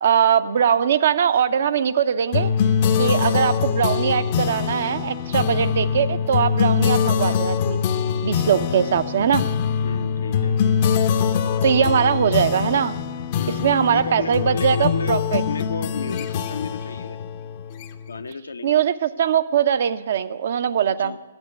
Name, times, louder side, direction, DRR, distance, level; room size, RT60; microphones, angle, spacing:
voice 1, 0.0-2.5 3.0-7.8 8.2-9.4 11.6-13.0 13.6-15.4 18.6-21.1, right 8 dB, 50° right, 11 dB, 0.6 m, -21 dB
sound 1, 2.3-18.2, left 7 dB, 35° left, 0.7 m, -23 dB
voice 2, 9.8-10.6 13.4-17.2 18.1-18.8 20.8-21.2, left 5 dB, 75° left, 9 dB, 0.8 m, -33 dB
10.5 x 7.8 x 9.3 m, 1.2 s
figure-of-eight pair, 130°, 0 cm